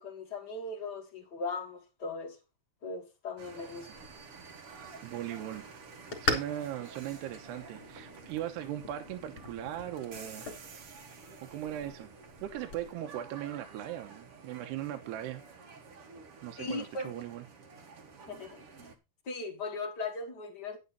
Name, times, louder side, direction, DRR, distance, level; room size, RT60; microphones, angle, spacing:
voice 1, 0.0-2.4 2.8-3.9 16.6-17.1 18.3-18.9 19.2-20.8, left 3 dB, 70° left, 0.9 m, -38 dB
sound 1, 3.4-18.9, right 5 dB, 55° right, 1.5 m, -50 dB
sound 2, 3.9-12.9, left 3 dB, 35° left, 3.0 m, -41 dB
voice 2, 5.0-5.7 6.2-10.5 11.4-12.1 12.4-15.4 16.4-17.4, right 12 dB, 80° right, 3.0 m, -38 dB
10.5 x 9.5 x 4.1 m
omnidirectional pair, 4.9 m